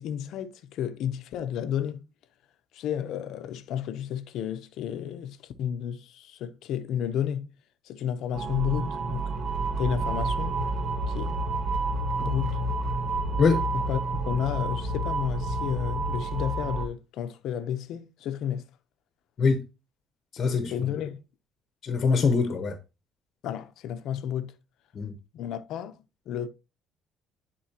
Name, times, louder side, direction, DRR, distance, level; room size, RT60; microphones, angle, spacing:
voice 1, 0.0-2.0 2.7-7.5 7.8-9.3 9.8-10.7 11.1-11.4 12.2-12.6 13.7-18.6 20.7-21.2 23.4-24.5 25.3-26.0 26.3-26.5, left 9 dB, 70° left, 0.8 m, -32 dB
sound 1, 8.3-16.9, right 2 dB, 50° right, 1.6 m, -29 dB
voice 2, 20.3-20.9 21.8-22.8 24.9-25.2, left 4 dB, 40° left, 1.1 m, -24 dB
10.5 x 4.5 x 2.9 m
cardioid pair, 140°, 0 cm